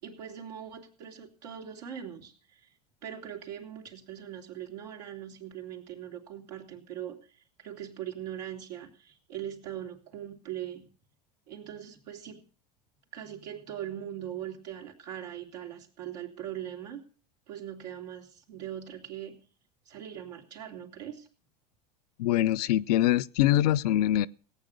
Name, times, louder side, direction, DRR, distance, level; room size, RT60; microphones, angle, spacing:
voice 1, 0.0-2.7 3.0-7.2 7.6-10.9 11.5-12.4 13.1-17.0 17.5-19.4 19.9-21.3, right 10 dB, 80° right, 3.5 m, -41 dB
voice 2, 22.2-24.3, left 13 dB, 70° left, 0.7 m, -24 dB
18.0 x 9.0 x 6.7 m
hypercardioid pair, 85°, 21 cm